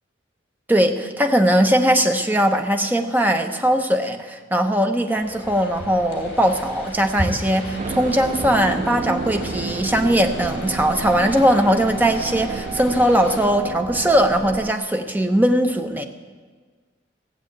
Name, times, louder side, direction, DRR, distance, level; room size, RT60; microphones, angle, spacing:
voice 1, 0.7-16.1, equal, 10° right, 5 dB, 0.9 m, -20 dB
sound 1, 5.1-13.5, equal, 65° left, 2.8 m, -35 dB
sound 2, 7.8-14.7, right 4 dB, 40° right, 0.4 m, -30 dB
16.0 x 7.2 x 8.6 m, 1.5 s
head